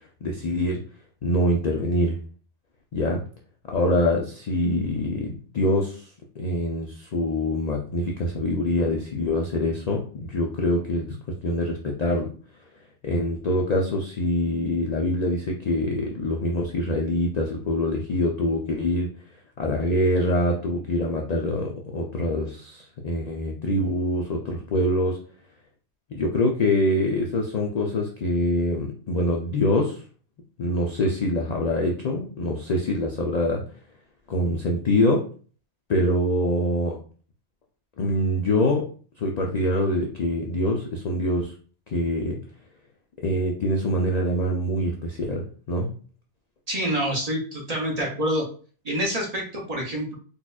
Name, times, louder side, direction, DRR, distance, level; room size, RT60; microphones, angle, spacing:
voice 1, 0.2-0.8 1.2-2.2 2.9-3.2 3.7-6.1 6.4-12.3 13.0-19.1 19.6-25.2 26.1-30.0 30.6-33.6 34.3-35.2 35.9-37.0 38.0-38.9 39.2-41.5 41.9-42.4 43.2-45.9, left 1 dB, 70° left, 0 dB, 0.4 m, -24 dB
voice 2, 46.7-48.5 48.8-50.1, equal, 40° right, -1 dB, 0.7 m, -27 dB
4.2 x 2.3 x 2.3 m, 0.41 s
omnidirectional pair, 1.3 m